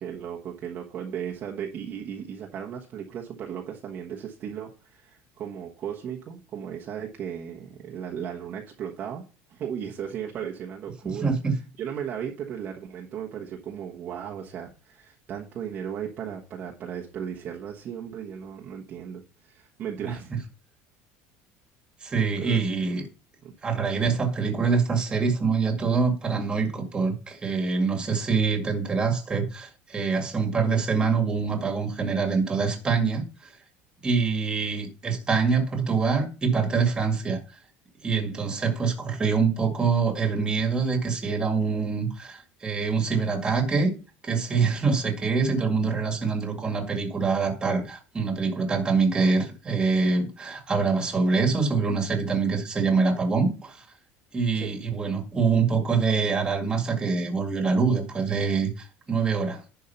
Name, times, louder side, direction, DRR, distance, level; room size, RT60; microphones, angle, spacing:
voice 1, 0.0-9.2 9.5-20.5 22.4-23.0 23.4-23.7 54.5-54.8, right 8 dB, 35° right, 1.2 m, -36 dB
voice 2, 11.0-11.5 20.0-20.1 22.0-23.0 23.6-33.5 34.0-37.4 38.0-43.9 44.2-53.9 54.3-59.6, right 5 dB, 15° right, 2.0 m, -25 dB
11.0 x 4.6 x 5.7 m
cardioid pair, 165°, 5 cm